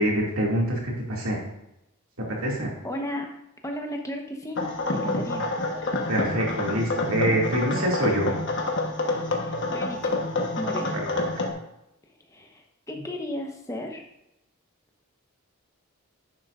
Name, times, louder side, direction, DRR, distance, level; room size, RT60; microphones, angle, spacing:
voice 1, 0.0-1.4 2.4-2.7 6.1-8.3 10.9-11.4, right 1 dB, 70° right, -2 dB, 2.4 m, -25 dB
voice 2, 2.8-3.3 3.6-4.6 4.9-5.4 9.4-10.2 10.6-10.9 12.1-14.0, left 1 dB, 15° left, 2 dB, 1.0 m, -34 dB
sound 1, 4.6-11.5, left 2 dB, 55° left, 1.2 m, -28 dB
10.5 x 9.2 x 2.5 m, 0.86 s
head